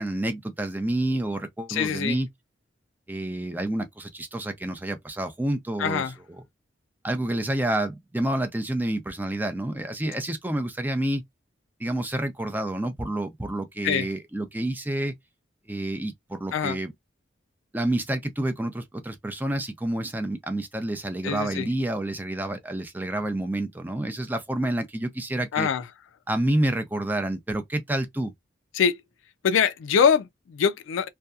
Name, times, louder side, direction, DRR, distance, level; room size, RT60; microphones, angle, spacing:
voice 1, 0.0-2.3 3.1-6.1 7.0-11.2 11.8-15.1 15.7-16.9 17.7-25.7 26.3-28.3, right 1 dB, 10° right, 0.4 m, -28 dB
voice 2, 1.7-2.2 5.8-6.1 13.8-14.1 16.5-16.8 21.2-21.7 25.5-25.8 28.7-29.0 29.4-31.1, left 7 dB, 85° left, 0.4 m, -23 dB
2.6 x 2.3 x 2.3 m
head